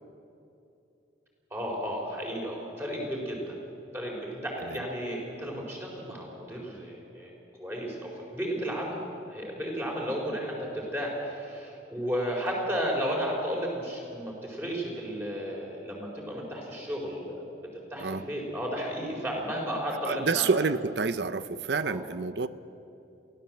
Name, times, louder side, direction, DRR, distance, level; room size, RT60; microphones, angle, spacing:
voice 1, 1.5-3.6 3.9-7.3 7.6-9.0 9.3-17.5 17.9-20.5 21.8-22.1, equal, 15° right, -2 dB, 4.7 m, -33 dB
voice 2, 20.0-22.5, right 4 dB, 70° right, 14 dB, 0.6 m, -28 dB
23.0 x 16.0 x 7.7 m, 2.8 s
head